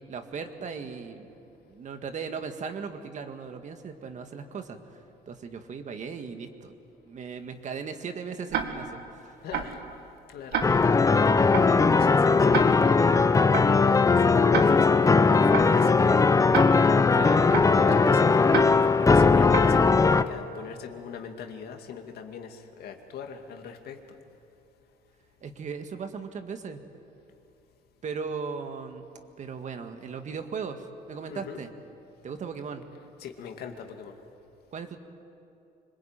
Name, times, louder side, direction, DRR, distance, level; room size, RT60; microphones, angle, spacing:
voice 1, 0.1-1.3 1.7-4.8 5.3-6.8 7.0-9.4 17.1-18.2 25.4-26.8 28.0-29.0 29.4-31.7 32.2-32.8 34.7-35.0, right 5 dB, 45° right, 7 dB, 1.9 m, -37 dB
Tick-tock, 8.5-9.0 9.5-9.9 10.5-11.0 11.5-11.9 12.5-13.0 13.5-13.9 14.5-15.0 15.5-15.9 16.5-17.0 17.5-17.9 18.5-19.0 19.5-19.9, right 7 dB, 70° right, 2.1 m, -31 dB
voice 2, 9.4-9.8 10.3-10.6 11.0-16.2 17.7-24.0 31.3-31.6 33.2-34.2, left 7 dB, 70° left, 4 dB, 2.4 m, -40 dB
sound 1, 10.6-20.2, left 4 dB, 20° left, 0.8 m, -19 dB
25.5 x 21.5 x 9.1 m, 2.7 s
cardioid pair, 110°, 17 cm